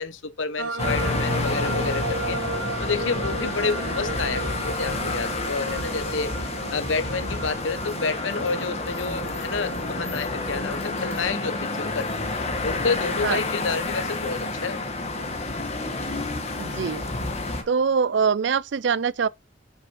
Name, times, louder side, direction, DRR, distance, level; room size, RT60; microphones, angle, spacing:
voice 1, 0.0-2.4 2.8-6.3 6.7-12.1 12.6-14.8, left 4 dB, 70° left, 1.0 m, -29 dB
sound 1, 0.6-18.3, right 2 dB, 85° right, 1.0 m, -36 dB
sound 2, 0.8-17.6, left 2 dB, 30° left, 1.9 m, -29 dB
voice 2, 16.6-17.1 17.7-19.3, right 6 dB, 60° right, 0.4 m, -23 dB
6.7 x 6.6 x 4.5 m
head